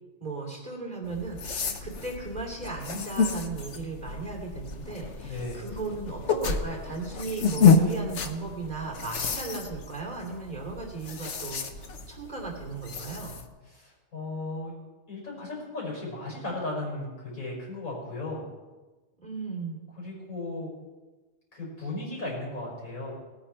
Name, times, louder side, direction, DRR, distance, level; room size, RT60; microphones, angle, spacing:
voice 1, 0.2-13.4 19.2-19.8, right 3 dB, 30° right, 0 dB, 2.9 m, -36 dB
sound 1, 1.0-13.5, left 5 dB, 60° left, 1.2 m, -29 dB
voice 2, 5.2-5.7 13.7-14.7 15.1-18.4 19.9-20.7 21.5-23.1, left 2 dB, 85° left, -4 dB, 5.7 m, -36 dB
19.0 x 9.3 x 4.4 m, 1.2 s
omnidirectional pair, 1.4 m